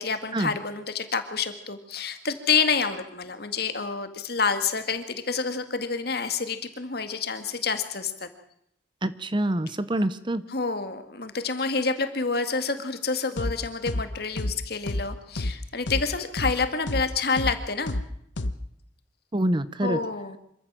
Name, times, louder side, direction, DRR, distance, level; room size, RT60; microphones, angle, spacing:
voice 1, 0.0-8.3 10.5-18.0 19.8-20.4, left 5 dB, 55° left, 9 dB, 2.0 m, -28 dB
voice 2, 9.0-10.4 19.3-20.0, right 1 dB, 25° right, 14 dB, 0.7 m, -26 dB
sound 1, 13.4-13.5 13.9-14.0 14.4-14.5 14.9-15.0 15.4-15.5 15.9-16.0 16.4-16.5 16.9-17.0 17.4-17.5 17.9-18.0 18.4-18.5, left 1 dB, 80° left, 1.2 m, -28 dB
25.5 x 14.5 x 7.5 m, 0.72 s
head